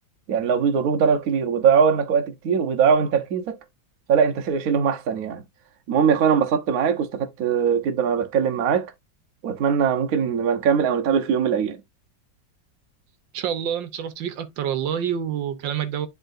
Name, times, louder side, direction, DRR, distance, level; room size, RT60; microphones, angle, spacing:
voice 1, 0.3-3.6 4.1-5.4 5.9-8.9 9.4-11.8, right 7 dB, 55° right, 1.2 m, -21 dB
voice 2, 13.3-16.1, right 9 dB, 75° right, 1.5 m, -27 dB
11.0 x 3.7 x 2.5 m
omnidirectional pair, 2.1 m